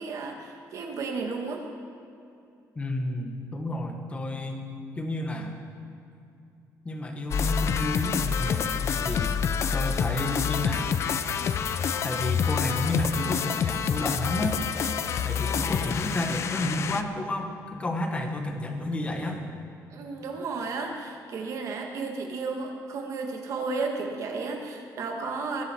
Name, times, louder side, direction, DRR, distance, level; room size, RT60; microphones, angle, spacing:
voice 1, 0.0-1.7 19.9-25.6, right 4 dB, 55° right, 2 dB, 1.8 m, -33 dB
voice 2, 2.7-5.5 6.8-9.4 9.7-10.9 12.0-14.6 15.2-19.4, left 1 dB, 20° left, 3 dB, 1.4 m, -31 dB
sound 1, 7.3-17.0, left 7 dB, 45° left, 0.5 m, -27 dB
20.5 x 11.5 x 4.5 m, 2.6 s
cardioid pair, 180°, 7 cm